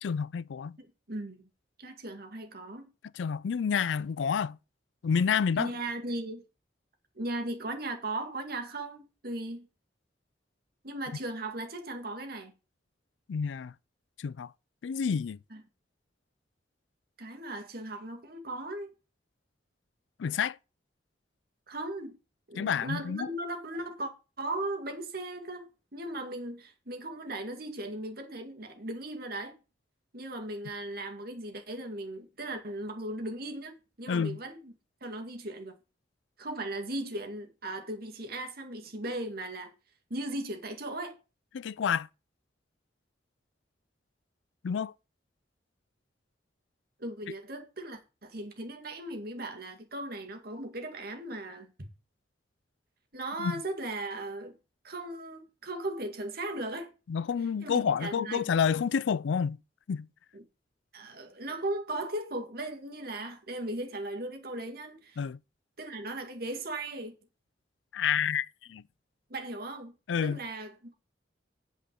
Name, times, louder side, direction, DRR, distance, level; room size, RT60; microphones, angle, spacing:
voice 1, 0.0-0.8 3.1-4.6 5.0-5.7 13.3-13.7 14.2-14.5 14.8-15.4 20.2-20.6 22.6-23.3 34.1-34.4 41.5-42.1 44.6-44.9 53.4-53.6 57.1-59.6 59.9-60.1 65.2-65.4 67.9-68.8 70.1-70.4, left 7 dB, 85° left, 0.4 m, -29 dB
voice 2, 0.8-1.5 1.8-2.9 5.6-6.4 7.2-9.7 10.8-12.5 15.5-15.6 17.2-18.9 21.7-22.2 22.5-24.1 24.4-29.6 30.1-34.7 35.0-35.8 36.4-39.7 40.1-41.2 47.0-51.7 53.1-54.5 54.8-56.9 57.6-58.4 60.3-60.4 60.9-65.2 65.8-67.1 69.3-69.9 70.2-70.9, right 1 dB, 55° right, 2.1 m, -37 dB
8.6 x 5.1 x 7.6 m
head